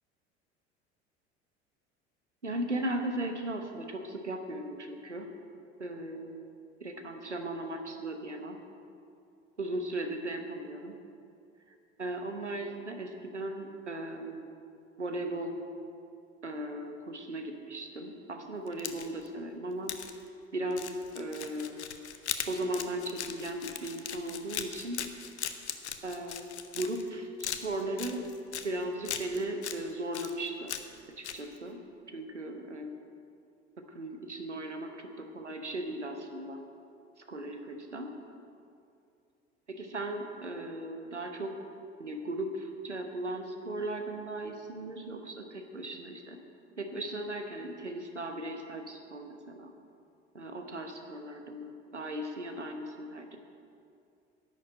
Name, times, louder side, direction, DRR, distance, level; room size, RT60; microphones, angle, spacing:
voice 1, 2.4-5.3 5.8-6.4 6.8-8.6 9.6-11.0 12.0-14.5 15.0-15.6 16.4-19.9 20.5-21.8 22.5-25.1 26.0-28.3 28.6-30.7 31.1-33.0 33.8-36.7 37.2-38.2 39.7-41.7 42.0-46.4 46.8-49.7 50.3-53.4, right 1 dB, 90° right, 5 dB, 1.0 m, -37 dB
sound 1, 18.7-19.3 19.9-20.1 20.7-27.1 27.4-28.7 29.0-29.8 30.1-31.0 31.2-31.4, left 9 dB, 75° left, 0.8 m, -38 dB
11.0 x 7.0 x 8.8 m, 2.5 s
figure-of-eight pair, 65°, 34 cm